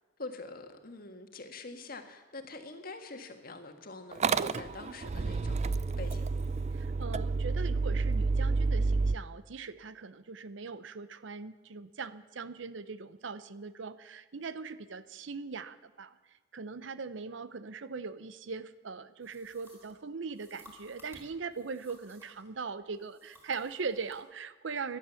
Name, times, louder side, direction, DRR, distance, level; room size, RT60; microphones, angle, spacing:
voice 1, 0.2-6.2, left 3 dB, 50° left, 6 dB, 1.6 m, -45 dB
Motor vehicle (road) / Engine starting, 4.1-9.2, right 4 dB, 35° right, 0.4 m, -30 dB
voice 2, 6.7-16.2 16.5-25.0, right 4 dB, 70° right, 14 dB, 0.7 m, -40 dB
sound 1, 19.2-22.5 22.9-24.2, equal, 10° right, 3.8 m, -58 dB
17.5 x 11.5 x 7.1 m, 1.3 s
head